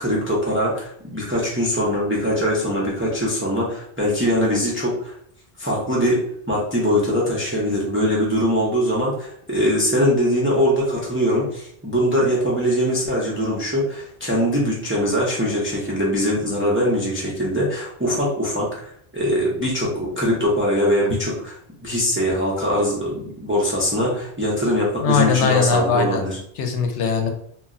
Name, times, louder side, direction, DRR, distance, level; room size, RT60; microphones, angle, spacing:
voice 1, 0.0-5.1 5.6-26.4, equal, 15° right, -5 dB, 0.4 m, -22 dB
voice 2, 25.0-26.2 26.6-27.3, left 5 dB, 80° left, 4 dB, 0.9 m, -20 dB
2.3 x 2.1 x 3.6 m, 0.66 s
omnidirectional pair, 1.2 m